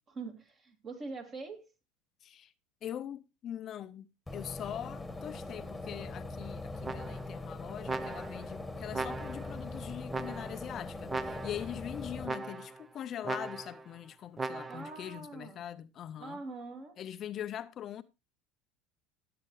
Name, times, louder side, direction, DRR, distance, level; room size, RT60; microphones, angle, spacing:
voice 1, 0.1-1.7 14.7-15.6 16.2-17.0, right 3 dB, 35° right, 2.6 m, -43 dB
voice 2, 2.2-2.5 2.8-4.1 4.3-16.4 17.0-18.0, left 10 dB, 45° left, 0.5 m, -42 dB
sound 1, 4.3-12.3, left 2 dB, 5° left, 1.5 m, -42 dB
sound 2, 6.8-7.4 7.9-8.5 8.9-9.6 10.1-10.7 11.1-11.7 12.2-12.8 13.2-13.9 14.4-15.0, right 3 dB, 20° right, 0.7 m, -38 dB
15.5 x 7.8 x 3.1 m
hypercardioid pair, 95°, 0 cm